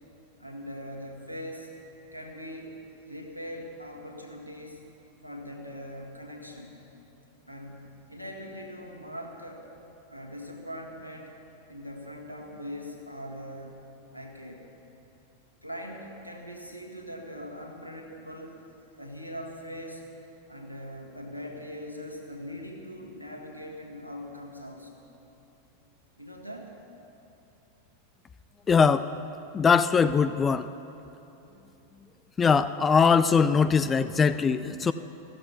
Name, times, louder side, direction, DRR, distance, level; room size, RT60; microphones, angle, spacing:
voice 1, 0.4-1.7 2.1-2.7 3.0-4.8 5.2-6.8 7.4-9.6 10.1-11.4 11.7-14.6 15.6-18.6 19.0-20.1 20.5-25.0 26.2-26.7, equal, 90° left, 1 dB, 1.8 m, -41 dB
voice 2, 28.7-29.1 29.5-30.7 32.4-34.9, left 5 dB, 20° left, 13 dB, 0.3 m, -21 dB
14.5 x 14.0 x 5.8 m, 3.0 s
figure-of-eight pair, 90°, 0 cm